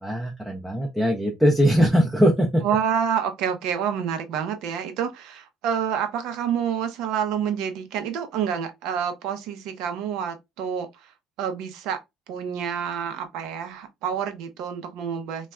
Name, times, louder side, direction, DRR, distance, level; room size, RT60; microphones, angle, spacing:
voice 1, 0.0-2.6, equal, 5° right, 0.5 m, -21 dB
voice 2, 2.6-11.1 11.4-12.0 12.3-15.5, right 8 dB, 75° right, 0.6 m, -28 dB
3.2 x 2.3 x 2.2 m
cardioid pair, 125°, 0 cm